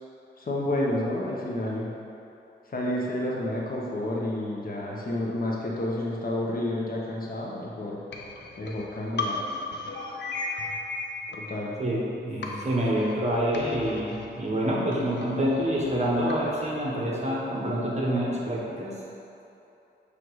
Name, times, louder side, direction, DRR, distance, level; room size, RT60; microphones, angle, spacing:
voice 1, 0.4-1.9 2.7-8.0 8.6-9.4 11.3-11.8, left 1 dB, 50° left, -3 dB, 1.0 m, -30 dB
sound 1, 8.1-12.1 12.4-16.8, left 3 dB, 70° left, 0.6 m, -37 dB
voice 2, 11.8-18.9, equal, 35° right, -4 dB, 1.2 m, -27 dB
6.3 x 3.4 x 4.7 m, 2.8 s
wide cardioid pair, 90°, 19 cm